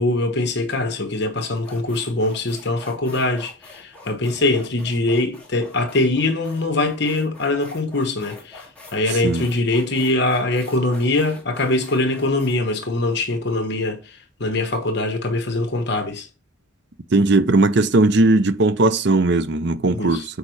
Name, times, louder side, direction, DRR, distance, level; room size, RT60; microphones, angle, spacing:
voice 1, 0.0-16.3 19.9-20.2, left 2 dB, 55° left, 1.1 m, -22 dB
sound 1, 1.0-1.1 1.6-13.9, left 2 dB, 5° left, 2.4 m, -45 dB
voice 2, 17.1-20.2, right 2 dB, 55° right, 0.6 m, -17 dB
8.4 x 5.1 x 3.3 m
head